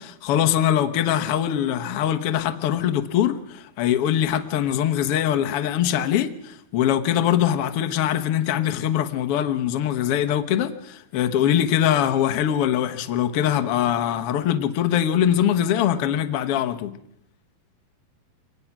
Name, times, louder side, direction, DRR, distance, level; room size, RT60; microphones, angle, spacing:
voice 1, 0.0-16.9, left 10 dB, 90° left, 1.2 m, -22 dB
24.5 x 19.5 x 6.0 m
omnidirectional pair, 4.4 m